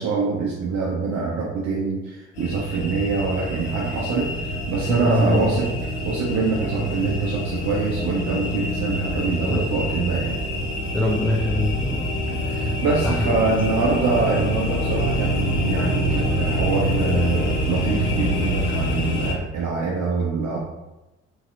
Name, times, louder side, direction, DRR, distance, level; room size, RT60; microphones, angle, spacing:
voice 1, 0.0-5.7 6.0-10.4 12.4-20.6, right 4 dB, 50° right, -3 dB, 0.6 m, -25 dB
sound 1, 2.4-19.3, left 1 dB, 75° left, 0.7 m, -26 dB
voice 2, 4.9-5.6 9.5-9.7 10.9-12.1 13.0-13.3, left 1 dB, 5° left, -3 dB, 0.4 m, -23 dB
3.0 x 2.7 x 2.5 m, 1.0 s
figure-of-eight pair, 45°, 35 cm